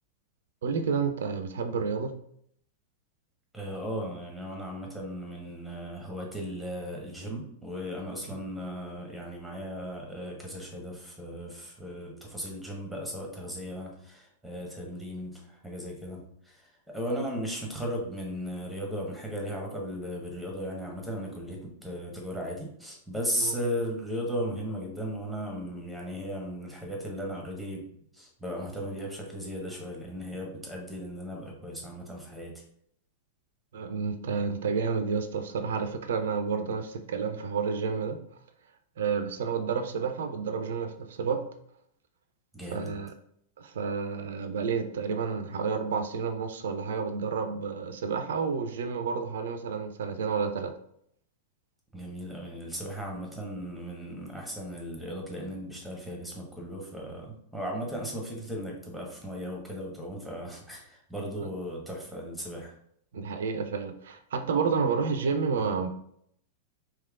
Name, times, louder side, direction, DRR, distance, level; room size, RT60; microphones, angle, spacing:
voice 1, 0.6-2.2 8.3-8.4 23.4-23.5 33.7-38.2 39.0-41.5 42.7-43.1 43.6-50.7 61.4-61.5 63.1-65.9, right 5 dB, 60° right, 8 dB, 0.3 m, -30 dB
voice 2, 3.5-16.6 16.9-27.8 28.2-32.5 42.5-42.9 51.9-62.7, equal, ahead, -1 dB, 1.0 m, -36 dB
3.4 x 2.9 x 2.3 m, 0.68 s
figure-of-eight pair, 95°, 0 cm